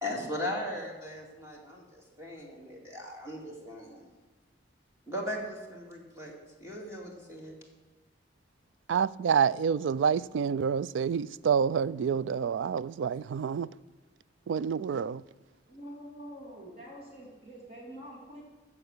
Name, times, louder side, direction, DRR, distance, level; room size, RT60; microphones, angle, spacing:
voice 1, 0.0-4.0 5.1-6.3 6.6-7.5, left 1 dB, 15° right, 2.4 m, -38 dB
voice 2, 8.9-13.7 14.5-15.2, right 7 dB, 75° right, 0.3 m, -28 dB
voice 3, 15.7-18.4, equal, 35° right, 2.7 m, -46 dB
15.5 x 7.0 x 6.6 m
head